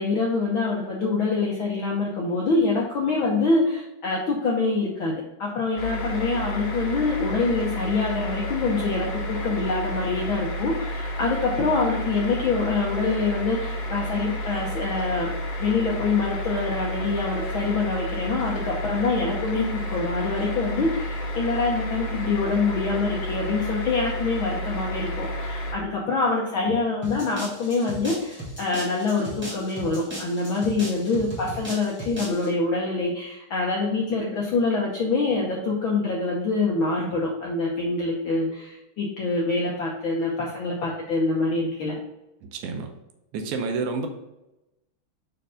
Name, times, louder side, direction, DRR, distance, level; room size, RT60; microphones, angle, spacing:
voice 1, 0.0-5.1 5.4-15.3 15.6-42.0, left 3 dB, 75° left, -2 dB, 1.1 m, -25 dB
sound 1, 5.8-25.7, equal, 55° left, 1.4 m, -31 dB
sound 2, 27.0-32.5, right 1 dB, 5° right, 0.8 m, -37 dB
voice 2, 42.4-42.9 43.3-44.1, right 4 dB, 85° right, 5 dB, 2.1 m, -29 dB
5.3 x 4.3 x 5.0 m, 0.95 s
omnidirectional pair, 3.4 m